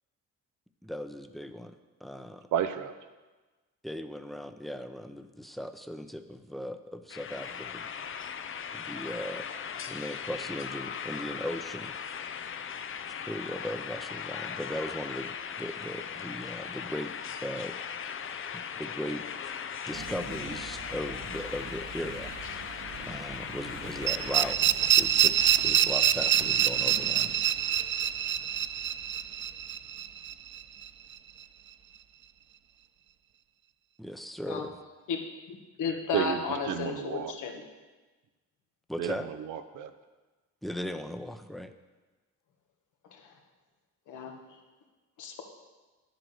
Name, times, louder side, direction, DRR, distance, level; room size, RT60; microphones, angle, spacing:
voice 1, 0.8-1.8 2.0-2.4 3.8-7.9 8.7-9.5 9.9-12.0 13.3-17.1 17.4-17.8 18.5-19.2 19.9-22.3 23.1-24.6 24.9-27.4 34.0-34.8 38.9-39.3 40.6-41.7, equal, ahead, 9 dB, 0.8 m, -38 dB
voice 2, 2.5-2.9 36.1-37.3 39.0-39.9, right 10 dB, 85° right, 10 dB, 0.9 m, -32 dB
sound 1, 7.1-24.5, left 7 dB, 45° left, 0.7 m, -38 dB
sound 2, 19.9-32.0, right 5 dB, 55° right, 1.1 m, -46 dB
sound 3, 24.1-30.9, right 10 dB, 40° right, 0.4 m, -26 dB
voice 3, 35.5-37.5 44.1-44.3 45.2-45.4, left 5 dB, 80° left, 2 dB, 1.7 m, -33 dB
10.5 x 8.0 x 6.5 m, 1.2 s
cardioid pair, 90°, 30 cm